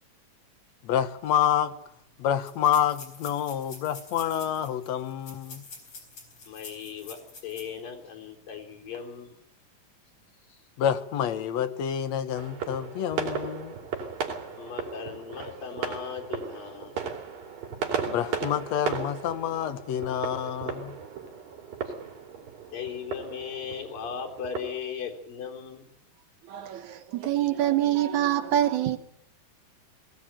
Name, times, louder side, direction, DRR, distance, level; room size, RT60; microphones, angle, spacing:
voice 1, 0.8-1.8 2.2-5.6 10.8-13.8 18.0-21.0, left 9 dB, 65° left, 2.0 m, -28 dB
sound 1, 1.3-1.4 1.6-1.7 2.4-7.8 8.2-8.3 8.8-9.0, left 4 dB, 45° left, 5.2 m, -47 dB
voice 2, 6.5-9.3 14.6-17.0 21.8-21.9 22.7-25.9, left 7 dB, 90° left, 5.3 m, -37 dB
sound 2, 12.4-24.6, right 6 dB, 85° right, 4.6 m, -36 dB
voice 3, 26.5-29.0, right 12 dB, 65° right, 2.4 m, -25 dB
20.5 x 16.5 x 8.9 m
omnidirectional pair, 3.9 m